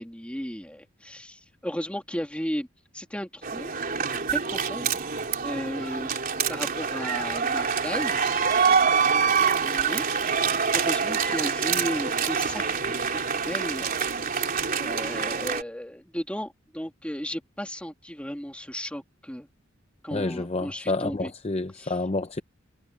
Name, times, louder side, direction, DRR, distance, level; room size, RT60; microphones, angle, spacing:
voice 1, 0.0-2.7 2.9-3.7 4.3-5.0 5.4-8.2 9.6-10.0 10.7-13.0 13.3-13.9 14.4-19.5 20.0-21.3 21.8-21.9, equal, 5° left, 2.4 m, -35 dB
sound 1, 3.4-15.6, right 6 dB, 45° right, 3.3 m, -26 dB
voice 2, 20.1-22.4, left 2 dB, 30° left, 0.7 m, -29 dB
head